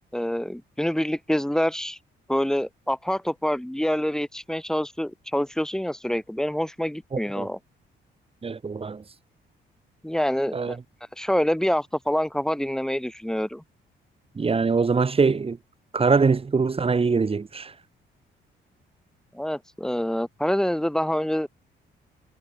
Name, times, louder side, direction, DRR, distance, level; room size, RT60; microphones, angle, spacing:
voice 1, 0.1-2.0 2.3-7.6 10.0-10.8 11.2-13.6 19.3-21.5, equal, 5° left, 3.0 m, -26 dB
voice 2, 7.1-7.5 8.4-9.0 10.5-10.7 14.3-15.6 15.9-17.7, right 4 dB, 30° right, 1.5 m, -23 dB
cardioid pair, 90°, 20 cm